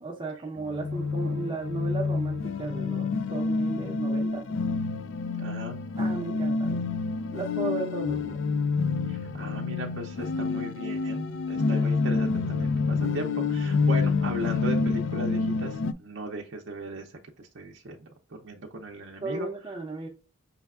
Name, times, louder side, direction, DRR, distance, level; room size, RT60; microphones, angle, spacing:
voice 1, 0.0-4.5 6.0-6.8 7.3-8.4 19.2-20.1, right 3 dB, 25° right, 0.7 m, -35 dB
sound 1, 0.6-15.9, left 4 dB, 65° left, 0.3 m, -28 dB
voice 2, 0.9-1.4 5.4-5.8 9.1-19.5, right 1 dB, 60° right, 0.6 m, -37 dB
5.5 x 3.3 x 2.3 m
head